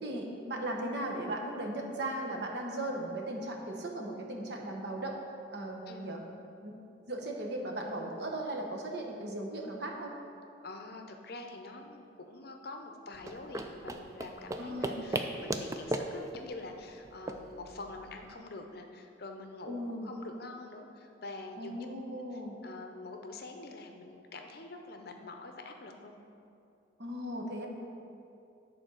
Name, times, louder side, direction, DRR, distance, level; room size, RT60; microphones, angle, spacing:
voice 1, 0.0-5.1 5.5-6.2 6.6-6.7 7.1-10.1 14.6-14.9 19.7-20.1 21.6-22.5 27.0-27.7, right 1 dB, 55° right, 1 dB, 1.0 m, -37 dB
voice 2, 5.9-6.3 10.6-21.9 22.3-26.1, left 2 dB, 50° left, 4 dB, 0.7 m, -46 dB
sound 1, 13.1-18.3, right 2 dB, 15° right, 0.3 m, -38 dB
9.1 x 4.3 x 6.3 m, 2.6 s
head